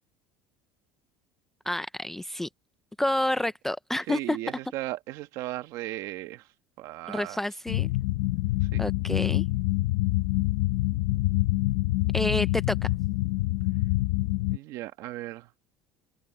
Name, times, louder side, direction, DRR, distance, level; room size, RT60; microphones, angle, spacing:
voice 1, 1.7-2.5 3.0-4.4 7.1-7.9 8.8-9.4 12.1-12.8, left 1 dB, 5° left, 0.4 m, -28 dB
voice 2, 4.1-6.4 6.8-7.4 8.7-8.8 14.5-15.5, right 16 dB, 50° right, 1.2 m, -36 dB
sound 1, 7.7-14.6, left 18 dB, 80° left, 0.7 m, -26 dB
cardioid pair, 175°, 7 cm